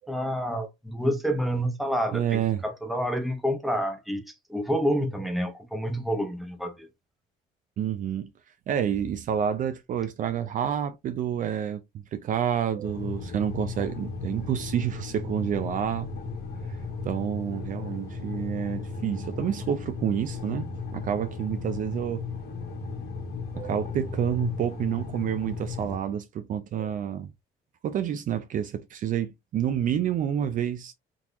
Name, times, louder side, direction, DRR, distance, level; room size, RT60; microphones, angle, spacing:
voice 1, 0.1-6.9, equal, ahead, 0.9 m, -28 dB
voice 2, 2.1-2.6 7.8-8.3 8.7-11.8 12.1-16.1 17.0-20.7 20.9-22.2 23.5-27.3 27.8-30.9, right 9 dB, 50° right, 0.5 m, -28 dB
sound 1, 12.8-26.0, left 4 dB, 65° left, 1.4 m, -35 dB
3.8 x 2.9 x 2.5 m
cardioid pair, 110°, 17 cm